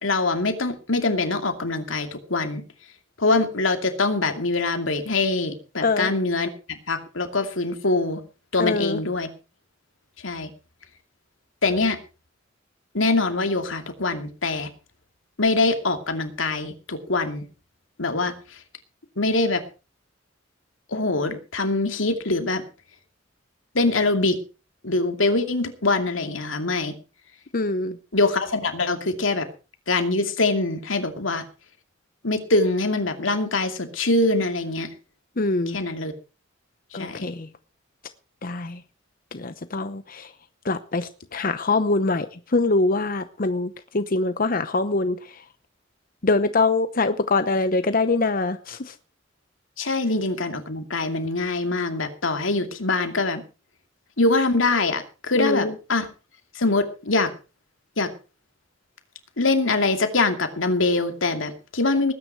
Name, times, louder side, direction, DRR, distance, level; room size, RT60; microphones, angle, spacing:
voice 1, 0.0-2.6 3.2-8.2 8.5-9.3 10.2-10.5 11.6-12.0 12.9-14.7 15.4-17.4 18.0-18.3 19.2-19.6 20.9-22.6 23.7-24.4 24.8-26.9 28.1-29.5 29.9-31.4 32.2-34.9 35.7-36.1 36.9-37.2 49.8-53.4 54.2-56.1 56.5-57.3 58.0-58.1 59.4-62.1, left 3 dB, 80° left, 7 dB, 2.5 m, -23 dB
voice 2, 5.8-6.1 8.6-9.0 27.5-28.0 35.4-35.8 36.9-37.5 38.4-38.8 39.3-40.3 40.6-45.2 46.2-48.9 55.3-55.7, left 3 dB, 45° left, 11 dB, 0.8 m, -24 dB
19.5 x 9.8 x 4.6 m, 0.34 s
head